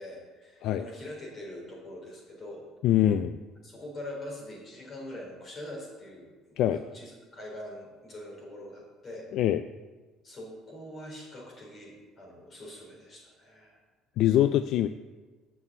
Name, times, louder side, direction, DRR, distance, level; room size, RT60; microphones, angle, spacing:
voice 1, 0.0-2.6 3.6-9.2 10.2-13.8, left 1 dB, 35° left, -1 dB, 3.7 m, -43 dB
voice 2, 2.8-3.4 6.6-6.8 9.3-9.6 14.2-14.9, left 12 dB, 65° left, 11 dB, 0.3 m, -23 dB
7.3 x 6.3 x 7.9 m, 1.3 s
cardioid pair, 130°, 0 cm